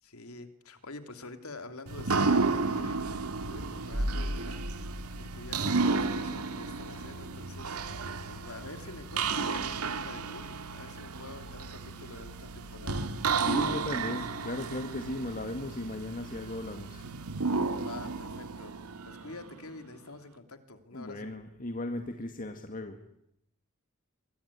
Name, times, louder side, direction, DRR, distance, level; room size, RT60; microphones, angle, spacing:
voice 1, 0.0-3.0 3.4-4.6 5.2-14.3 17.7-21.3, left 2 dB, 75° left, 8 dB, 3.0 m, -47 dB
sound 1, 1.9-19.7, right 3 dB, 90° right, 2.1 m, -32 dB
voice 2, 13.3-17.0 20.9-23.0, left 1 dB, 40° left, 6 dB, 2.0 m, -37 dB
24.0 x 22.5 x 9.8 m, 0.78 s
head